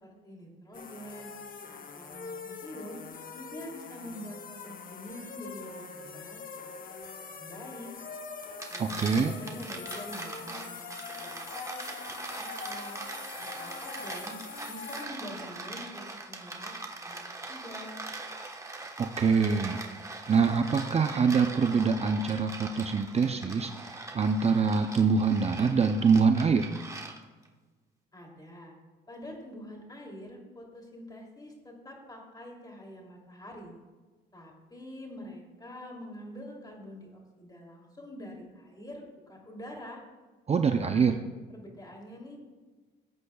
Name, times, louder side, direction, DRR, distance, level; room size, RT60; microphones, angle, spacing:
voice 1, 0.0-1.3 1.7-3.0 3.3-7.9 8.7-11.8 12.2-13.0 13.4-14.4 14.7-18.0 28.1-28.7 29.1-33.7 34.3-40.0 40.7-41.1 41.5-42.4, equal, 20° left, 0 dB, 2.9 m, -46 dB
sound 1, 0.7-15.1, left 5 dB, 45° left, 0.8 m, -43 dB
sound 2, 8.4-27.5, right 2 dB, 15° right, 1.2 m, -41 dB
voice 2, 8.8-9.4 19.0-19.8 20.3-26.7 40.5-41.2, right 5 dB, 30° right, 6 dB, 0.5 m, -25 dB
17.0 x 8.1 x 2.3 m, 1.3 s
cardioid pair, 90°, 20 cm